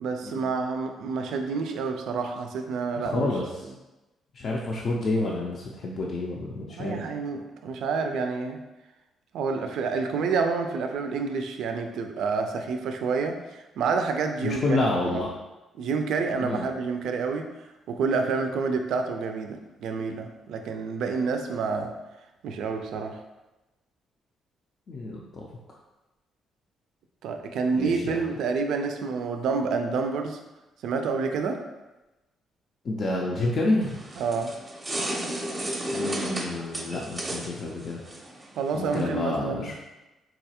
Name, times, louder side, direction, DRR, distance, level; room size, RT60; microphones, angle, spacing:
voice 1, 0.0-3.3 6.7-8.6 9.3-15.2 15.8-17.5 17.9-22.0 22.4-23.2 27.2-30.4 30.8-31.6 34.2-34.5 38.6-39.7, right 4 dB, 80° right, 5 dB, 0.3 m, -28 dB
voice 2, 2.9-3.7 4.3-7.0 14.4-15.3 16.4-16.7 24.9-25.5 27.8-28.2 32.8-34.0 35.9-38.0 38.7-39.7, left 2 dB, 50° left, -2 dB, 0.4 m, -29 dB
sound 1, 33.8-39.1, right 1 dB, 25° right, 0.6 m, -33 dB
3.9 x 2.3 x 2.8 m, 1.0 s
cardioid pair, 90°, 0 cm